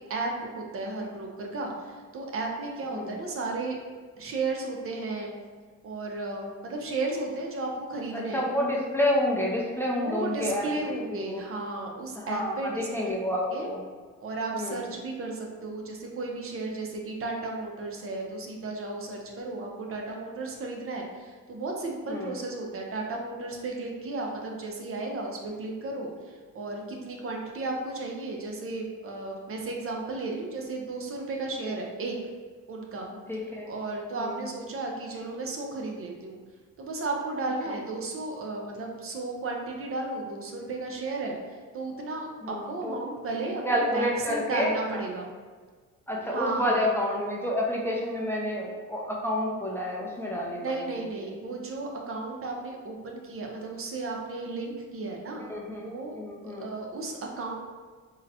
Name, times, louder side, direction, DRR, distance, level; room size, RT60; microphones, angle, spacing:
voice 1, 0.1-3.8 4.2-5.3 5.8-8.4 10.0-13.1 13.5-13.7 14.2-32.2 32.7-33.1 33.7-36.4 36.8-41.4 41.7-45.3 46.3-46.8 50.6-55.4 55.8-56.2 56.4-57.6, right 3 dB, 45° right, 0 dB, 0.6 m, -34 dB
voice 2, 8.1-11.4 12.2-13.8 14.5-14.8 22.1-22.4 31.6-31.8 33.3-33.7 34.2-34.4 42.4-42.9 43.6-45.0 46.1-50.9 55.4-55.9 56.1-56.7, left 1 dB, 10° left, -3 dB, 0.4 m, -29 dB
3.9 x 2.0 x 2.7 m, 1.5 s
cardioid pair, 90°, 30 cm